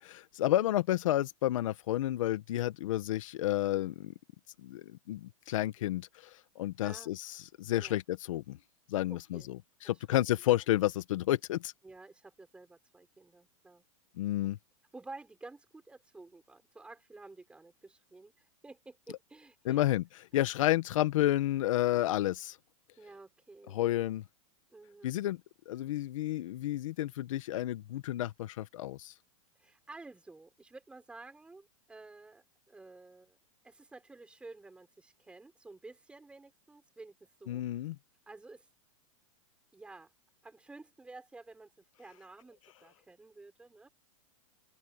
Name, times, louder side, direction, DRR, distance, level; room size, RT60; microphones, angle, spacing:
voice 1, 0.0-4.1 4.6-8.6 8.9-11.7 14.2-14.6 19.6-20.0 20.3-22.6 23.7-24.2 25.0-25.4 25.7-29.1 37.5-38.0, left 14 dB, 65° left, 1.1 m, -31 dB
voice 2, 9.1-9.5 9.8-10.2 11.8-13.8 14.9-19.8 20.3-20.4 23.0-24.0 24.7-25.2 29.6-33.4 33.6-37.6 38.3-38.7 39.7-40.1 40.4-43.9, right 3 dB, 5° right, 6.3 m, -52 dB
open air
supercardioid pair, 165°, 18 cm